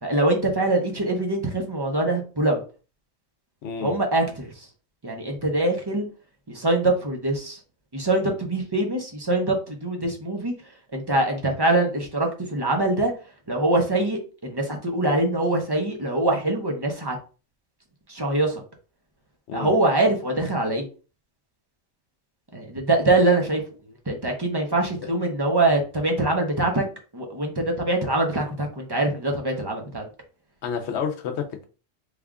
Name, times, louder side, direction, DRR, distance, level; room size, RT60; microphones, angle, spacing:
voice 1, 0.0-2.6 3.8-4.7 5.0-6.1 6.5-7.6 7.9-10.5 10.9-13.1 13.5-17.2 18.1-18.6 19.5-20.9 22.5-23.6 24.1-26.8 27.1-30.0, right 2 dB, 25° right, 0.5 m, -23 dB
voice 2, 3.6-4.0 19.5-19.7 25.0-25.1 30.6-31.6, left 7 dB, 65° left, 0.9 m, -30 dB
3.3 x 2.4 x 3.5 m
omnidirectional pair, 1.3 m